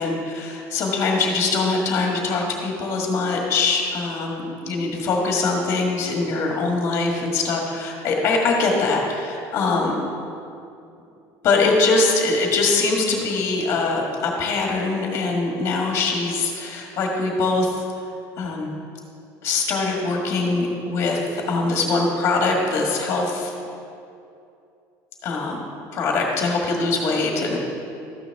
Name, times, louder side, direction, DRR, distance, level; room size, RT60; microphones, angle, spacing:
voice 1, 0.0-9.9 11.4-17.8 18.4-18.7 19.4-23.5 25.2-25.6 25.9-27.6, left 3 dB, 35° left, 0 dB, 1.6 m, -22 dB
13.0 x 9.2 x 3.5 m, 2.6 s
cardioid pair, 180°, 8 cm